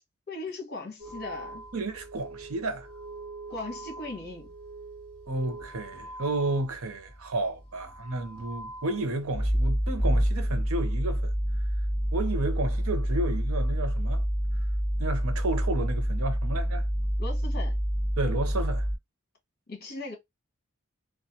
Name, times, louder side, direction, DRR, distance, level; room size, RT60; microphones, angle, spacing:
voice 1, 0.3-1.7 3.5-4.5 17.2-17.8 19.7-20.2, left 2 dB, 50° left, 1.2 m, -38 dB
sound 1, 1.0-7.3 7.6-19.0, equal, 10° right, 2.1 m, -29 dB
voice 2, 1.7-2.9 5.3-11.3 12.1-14.2 15.0-16.9 18.2-18.9, right 2 dB, 90° right, 0.8 m, -31 dB
3.2 x 2.4 x 2.8 m
head